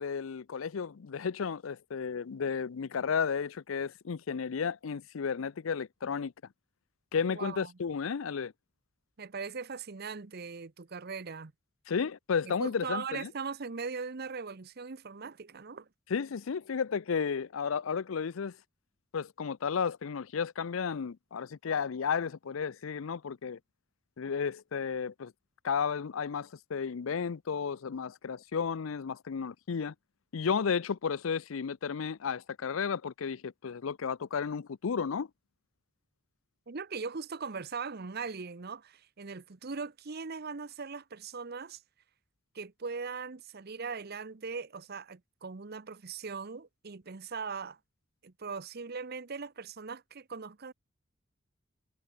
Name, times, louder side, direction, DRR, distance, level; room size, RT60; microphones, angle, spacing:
voice 1, 0.0-6.3 7.1-8.5 11.9-13.3 16.1-18.6 19.1-23.6 24.2-25.3 25.6-29.9 30.3-35.3, left 6 dB, 80° left, 0.5 m, -33 dB
voice 2, 7.3-7.7 9.2-11.5 12.4-15.9 36.7-41.8 42.5-47.8 48.2-50.7, right 5 dB, 50° right, 0.8 m, -40 dB
head